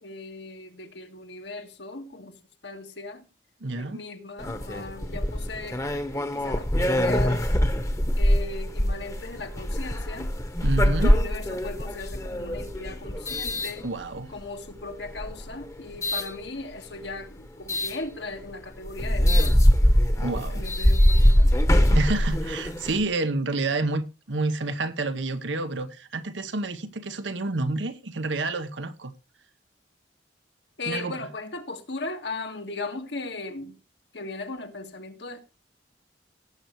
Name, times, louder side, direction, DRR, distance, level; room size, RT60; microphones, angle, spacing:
voice 1, 0.0-2.4 2.6-3.2 3.7-5.8 6.1-7.4 8.2-10.3 10.8-13.9 14.3-19.6 20.5-21.6 30.8-33.7 34.1-35.4, left 3 dB, 75° left, 1.7 m, -37 dB
voice 2, 3.6-4.0 10.6-11.2 13.8-14.3 20.2-20.6 21.9-29.1 30.9-31.1, right 2 dB, 90° right, 1.0 m, -29 dB
sound 1, 4.4-14.4 15.1-16.3 17.7-18.0 18.5-18.6 18.9-23.0, equal, 15° left, 1.0 m, -23 dB
18.0 x 8.0 x 3.1 m
head